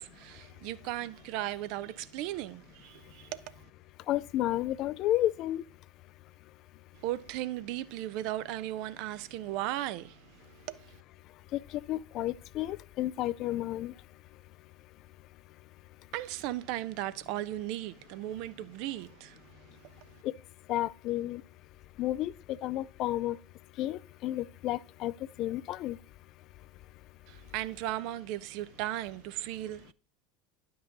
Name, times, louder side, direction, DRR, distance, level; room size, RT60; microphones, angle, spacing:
voice 1, 0.0-3.7 6.9-11.0 16.1-20.2 27.3-29.9, right 14 dB, 55° right, 0.5 m, -37 dB
voice 2, 4.1-5.6 11.5-11.6 11.9-13.9 20.2-20.3 20.7-21.4 22.0-23.4 23.8-25.1 25.4-26.0, left 14 dB, 45° left, 0.3 m, -31 dB
10.5 x 5.5 x 3.8 m
figure-of-eight pair, 75°, 0 cm